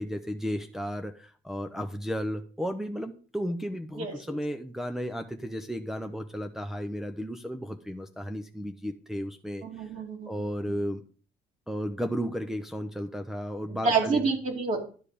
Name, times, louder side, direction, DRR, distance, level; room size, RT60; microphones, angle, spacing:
voice 1, 0.0-9.8 10.3-11.0 11.7-14.3, equal, ahead, 4 dB, 0.7 m, -34 dB
voice 2, 3.9-4.4 9.6-10.4 10.7-10.8 13.7-14.8, right 4 dB, 45° right, 0 dB, 2.5 m, -28 dB
11.5 x 4.9 x 5.0 m, 0.40 s
cardioid pair, 110°, 17 cm